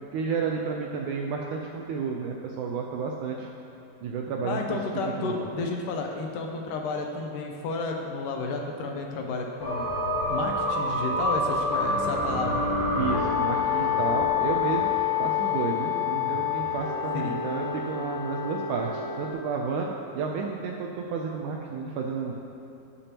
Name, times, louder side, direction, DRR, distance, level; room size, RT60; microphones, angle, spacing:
voice 1, 0.1-3.5 4.0-4.8 5.2-5.5 12.9-14.9 15.2-22.3, right 5 dB, 80° right, 0 dB, 1.8 m, -31 dB
voice 2, 4.4-9.8 10.3-12.6 16.1-16.3 17.3-17.4, left 3 dB, 75° left, 1 dB, 2.2 m, -32 dB
sound 1, 9.6-19.3, left 4 dB, 60° left, 0.7 m, -27 dB
18.5 x 7.0 x 2.9 m, 2.9 s
omnidirectional pair, 4.1 m